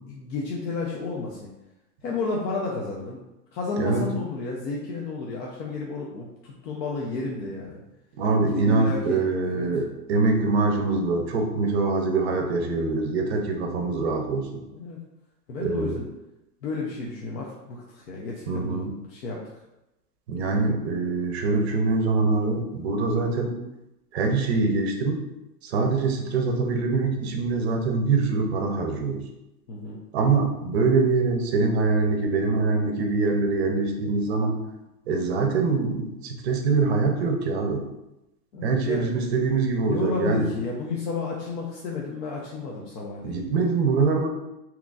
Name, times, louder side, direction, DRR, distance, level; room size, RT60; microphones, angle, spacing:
voice 1, 0.1-1.5 2.0-3.2 3.5-7.8 8.5-9.7 14.7-15.0 15.5-16.1 16.6-18.8 19.1-19.5 29.7-30.0 38.5-39.1 39.9-43.4, left 4 dB, 80° left, -3 dB, 0.8 m, -32 dB
voice 2, 8.2-14.6 15.6-16.0 18.5-18.9 20.3-23.6 24.1-25.2 25.6-29.2 30.1-34.6 35.1-37.8 38.6-40.5 43.2-44.3, right 3 dB, 40° right, 3 dB, 0.5 m, -24 dB
3.7 x 2.9 x 2.4 m, 0.94 s
hypercardioid pair, 150°, 49 cm